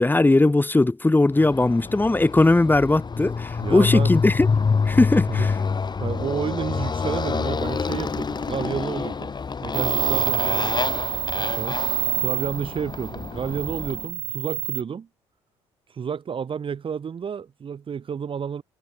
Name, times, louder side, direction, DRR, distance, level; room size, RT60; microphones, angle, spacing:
voice 1, 0.0-4.5 4.9-5.5, left 2 dB, 15° left, 2.7 m, -19 dB
Motorcycle, 1.4-14.1, left 5 dB, 30° left, 4.8 m, -27 dB
voice 2, 3.6-4.1 5.3-5.5 6.0-9.3 9.6-11.1 11.4-11.8 12.2-15.1 15.9-18.6, right 7 dB, 35° right, 2.0 m, -31 dB
sound 1, 9.7-14.8, right 16 dB, 55° right, 2.2 m, -27 dB
figure-of-eight pair, 50°, 15 cm